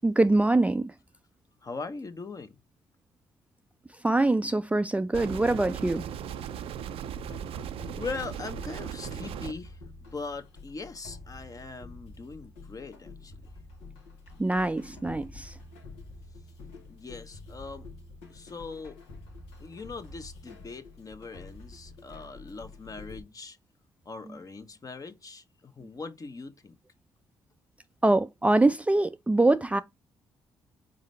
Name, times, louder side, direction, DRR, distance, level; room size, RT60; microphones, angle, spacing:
voice 1, 0.0-0.9 4.0-6.1 14.4-15.6 24.2-24.4 28.0-29.8, right 2 dB, 15° right, 0.4 m, -24 dB
voice 2, 1.6-2.5 7.9-13.3 16.9-17.9 18.3-19.0 19.6-23.6 24.0-26.7, left 4 dB, 35° left, 0.9 m, -40 dB
sound 1, 5.1-9.5, right 9 dB, 65° right, 0.5 m, -37 dB
sound 2, 7.2-23.2, left 2 dB, 85° left, 1.2 m, -47 dB
4.1 x 3.8 x 3.2 m
hypercardioid pair, 50°, 10 cm